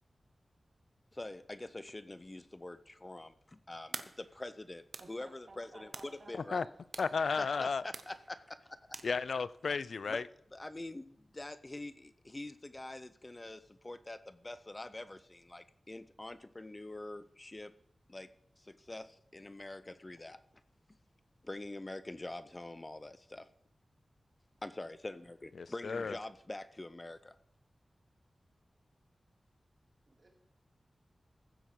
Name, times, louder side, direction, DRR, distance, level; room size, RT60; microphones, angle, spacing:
voice 1, 1.1-6.6 7.4-9.0 10.1-10.2 10.5-17.7 18.1-18.3 18.6-20.4 21.4-23.5 24.6-27.4, left 2 dB, 25° left, 0.5 m, -45 dB
sound 1, 3.9-9.7, right 5 dB, 90° right, 0.8 m, -50 dB
voice 2, 5.0-6.6 30.1-30.3, right 2 dB, 50° right, 3.2 m, -54 dB
voice 3, 6.3-6.6 7.0-7.8 9.0-10.2 25.6-26.2, left 5 dB, 80° left, 0.4 m, -33 dB
15.0 x 7.9 x 4.8 m
wide cardioid pair, 100°, 0 cm